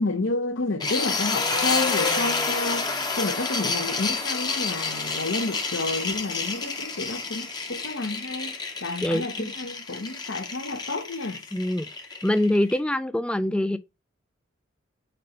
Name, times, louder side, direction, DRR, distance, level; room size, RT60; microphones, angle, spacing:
voice 1, 0.0-2.9 3.2-11.4, left 2 dB, 70° left, 0.9 m, -30 dB
sound 1, 0.8-12.8, left 4 dB, 20° left, 0.7 m, -29 dB
voice 2, 9.0-9.5 11.5-11.9 12.2-13.8, left 1 dB, 5° left, 0.3 m, -24 dB
4.3 x 4.3 x 5.2 m
head